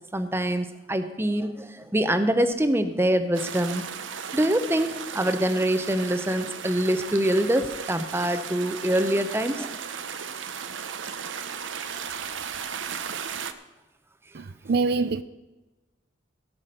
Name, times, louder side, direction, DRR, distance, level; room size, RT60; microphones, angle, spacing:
voice 1, 0.1-3.8 4.3-9.7, right 1 dB, 15° right, 0.7 m, -25 dB
sound 1, 3.3-13.5, right 7 dB, 90° right, 0.8 m, -36 dB
voice 2, 14.3-15.2, right 4 dB, 55° right, 0.4 m, -25 dB
17.0 x 5.9 x 6.6 m
head